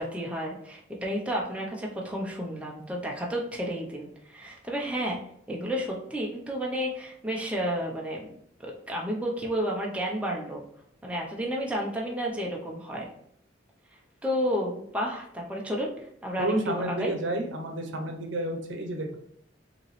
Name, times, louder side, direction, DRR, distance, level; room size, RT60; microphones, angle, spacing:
voice 1, 0.0-5.2 5.5-8.3 8.6-10.6 11.0-13.1 14.2-15.9 16.2-17.1, equal, 5° right, -2 dB, 0.6 m, -31 dB
voice 2, 16.4-19.2, right 1 dB, 80° right, 3 dB, 0.8 m, -30 dB
5.2 x 3.0 x 3.1 m, 0.69 s
head